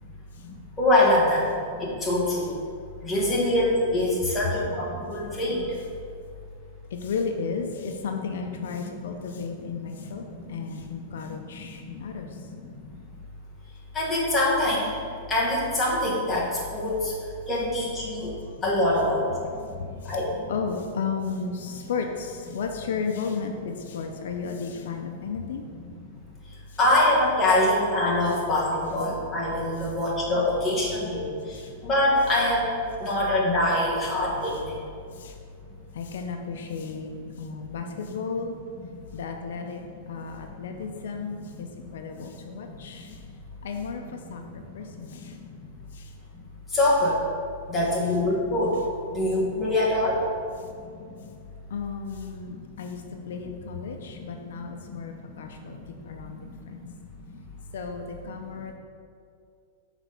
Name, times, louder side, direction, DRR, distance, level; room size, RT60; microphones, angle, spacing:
voice 1, 0.4-2.5 3.0-5.7 8.2-12.8 13.9-14.9 15.3-20.5 21.8-21.9 26.8-34.8 36.8-36.9 37.4-37.5 37.9-38.0 38.7-39.0 40.1-40.2 40.6-40.8 41.2-41.7 42.1-42.2 42.9-43.1 44.2-44.6 45.1-45.3 46.7-47.2 47.7-48.8 49.1-50.2 50.8-50.9 51.1-51.2 52.5-53.3 54.0-54.6 54.8-54.9 55.3-55.9 56.2-56.8 57.2-57.4 58.4-58.7, left 1 dB, 10° left, -6 dB, 1.5 m, -26 dB
voice 2, 6.9-10.2 10.5-12.4 19.8-20.2 20.5-25.6 31.5-31.7 35.1-35.4 35.9-38.5 39.1-39.8 40.1-43.2 43.6-44.4 44.7-45.4 45.9-46.1 51.7-55.8 56.0-56.8 57.7-58.7, left 5 dB, 80° left, 4 dB, 0.6 m, -34 dB
6.0 x 4.1 x 5.5 m, 2.4 s
supercardioid pair, 150°, 0 cm